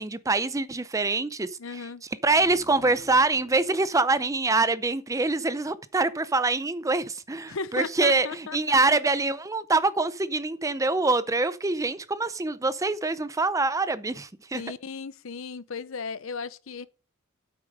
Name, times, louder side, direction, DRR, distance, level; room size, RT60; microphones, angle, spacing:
voice 1, 0.0-1.8 2.2-14.6, right 3 dB, 15° right, 0.5 m, -25 dB
voice 2, 1.6-2.0 7.5-9.0 14.5-16.9, left 5 dB, 65° left, 0.7 m, -36 dB
sound 1, 2.3-5.5, equal, 20° left, 2.8 m, -50 dB
8.7 x 8.2 x 5.2 m
head